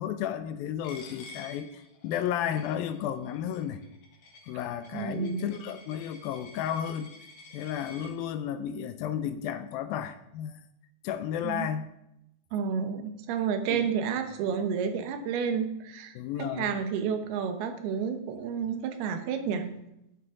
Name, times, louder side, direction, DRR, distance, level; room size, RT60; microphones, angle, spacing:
voice 1, 0.0-3.8 4.5-7.1 7.5-10.6 11.0-11.9 13.7-13.9 16.2-16.8, left 9 dB, 80° left, 11 dB, 2.3 m, -33 dB
Coin (dropping), 0.8-8.1, left 3 dB, 60° left, 2.8 m, -50 dB
voice 2, 4.9-5.6 11.4-11.7 12.5-19.7, right 7 dB, 85° right, 7 dB, 3.1 m, -31 dB
12.0 x 10.0 x 3.7 m, 0.81 s
omnidirectional pair, 4.5 m